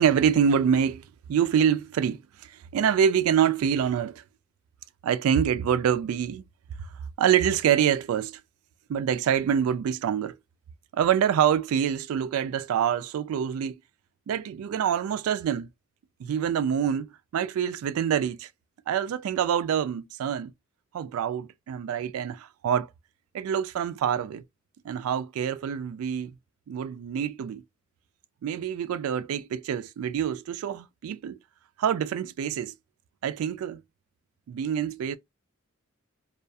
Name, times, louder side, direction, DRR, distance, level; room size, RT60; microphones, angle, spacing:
voice 1, 0.0-4.2 5.0-6.4 6.8-6.9 7.2-8.4 8.9-10.4 10.9-13.8 14.3-15.7 16.2-18.5 18.9-20.5 20.9-22.9 23.3-24.4 24.8-26.3 26.7-27.6 28.4-31.4 31.8-32.7 33.2-33.8 34.5-35.2, right 8 dB, 85° right, 0.3 m, -26 dB
2.3 x 2.3 x 2.6 m
head